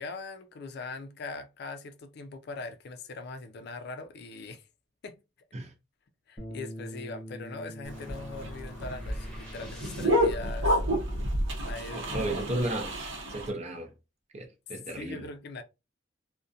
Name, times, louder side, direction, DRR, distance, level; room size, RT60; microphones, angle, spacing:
voice 1, 0.0-4.6 5.0-5.2 6.3-10.8 11.7-12.3 12.6-12.7 14.9-15.6, left 3 dB, 60° left, 0.4 m, -41 dB
Bass guitar, 6.4-12.6, equal, 35° left, 0.9 m, -46 dB
sound 1, 7.8-10.5, left 1 dB, 5° left, 0.9 m, -50 dB
sound 2, 7.9-13.5, equal, 70° right, 0.7 m, -29 dB
voice 2, 12.1-12.9 13.3-13.9 14.3-15.3, right 1 dB, 35° right, 0.6 m, -33 dB
2.4 x 2.1 x 2.6 m
head